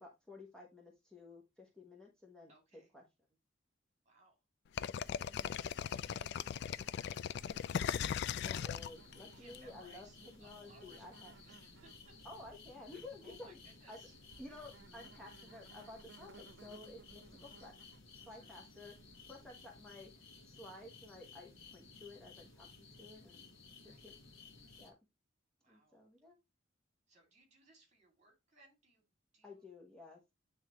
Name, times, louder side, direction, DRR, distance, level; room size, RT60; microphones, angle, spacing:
voice 1, 0.0-2.5 2.9-3.0 5.2-5.6 8.4-10.1 10.4-11.3 12.2-13.6 13.9-14.0 14.4-17.7 18.3-18.9 19.3-20.1 20.4-23.4 24.0-24.1 24.8-24.9 25.7-26.4 29.4-30.2, left 2 dB, 5° left, -1 dB, 1.1 m, -53 dB
voice 2, 2.5-2.9 4.0-4.4 5.5-7.7 9.2-12.2 13.2-14.2 18.4-18.6 23.8-24.1 25.6-26.0 27.1-29.0 29.3-29.7, right 2 dB, 35° right, 2 dB, 2.5 m, -66 dB
sound 1, 4.8-9.6, left 8 dB, 60° left, 0.3 m, -38 dB
Insect, 4.8-20.0, right 3 dB, 60° right, 0.8 m, -62 dB
sound 2, 8.4-24.9, left 4 dB, 80° left, 1.4 m, -57 dB
8.9 x 3.6 x 3.0 m, 0.22 s
head